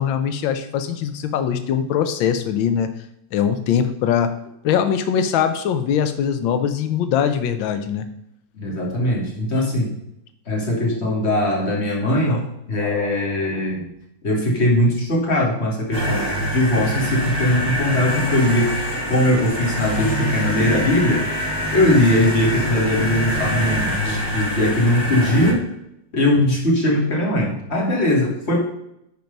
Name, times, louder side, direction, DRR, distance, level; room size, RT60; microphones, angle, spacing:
voice 1, 0.0-2.9 3.3-4.3 4.6-8.1, left 8 dB, 90° left, 9 dB, 1.5 m, -21 dB
voice 2, 8.5-9.9 10.5-12.4 12.7-13.8 14.2-18.8 19.1-21.3 21.7-25.7 26.1-28.6, left 1 dB, 35° left, -2 dB, 2.3 m, -20 dB
sound 1, 15.9-25.5, equal, 10° left, 2.6 m, -25 dB
10.5 x 4.6 x 5.3 m, 0.79 s
omnidirectional pair, 2.0 m